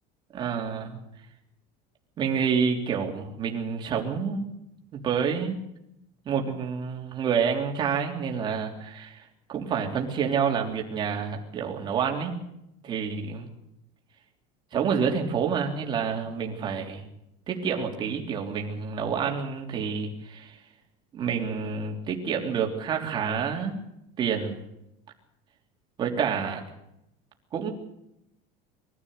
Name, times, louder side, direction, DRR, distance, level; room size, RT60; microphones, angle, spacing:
voice 1, 0.3-1.0 2.2-4.5 4.9-5.6 6.2-12.4 12.8-13.5 14.7-17.1 17.5-20.6 21.1-23.8 24.2-24.6 26.0-26.6 27.5-27.7, right 6 dB, 25° right, 1 dB, 3.4 m, -28 dB
23.0 x 15.0 x 8.0 m, 0.82 s
cardioid pair, 175°, 18 cm